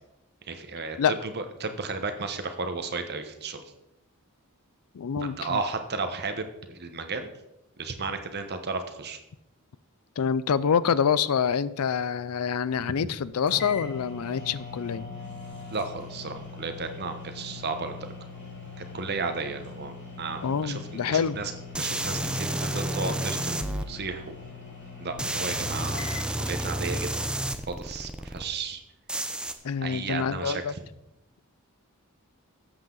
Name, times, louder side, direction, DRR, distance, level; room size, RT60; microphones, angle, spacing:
voice 1, 0.5-3.6 5.4-7.3 7.8-9.2 15.7-18.1 18.8-21.5 21.8-24.3 25.0-26.0 26.4-27.3 27.7-28.8 29.8-30.8, right 4 dB, 45° right, 1.1 m, -34 dB
voice 2, 4.9-5.6 10.2-15.1 20.4-21.4 29.6-30.7, left 7 dB, 75° left, 0.4 m, -26 dB
sound 1, 13.1-13.2 13.5-26.3, left 4 dB, 50° left, 3.3 m, -42 dB
sound 2, 21.7-23.8 25.2-28.4 29.1-29.5, right 1 dB, 5° right, 0.6 m, -30 dB
13.0 x 8.1 x 3.9 m
head